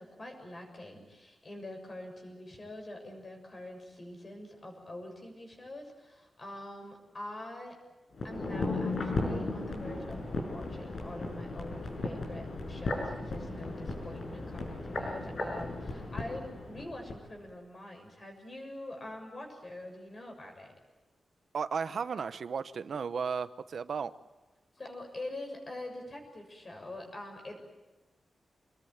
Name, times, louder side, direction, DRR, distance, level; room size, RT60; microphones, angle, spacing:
voice 1, 0.0-7.8 8.2-20.8 24.8-27.6, left 1 dB, 30° left, 6.9 m, -44 dB
sound 1, 8.1-17.2 17.5-17.6, left 2 dB, 55° left, 6.2 m, -36 dB
voice 2, 21.5-24.1, right 6 dB, 60° right, 1.0 m, -34 dB
27.0 x 21.0 x 9.0 m
wide cardioid pair, 160°, 0 cm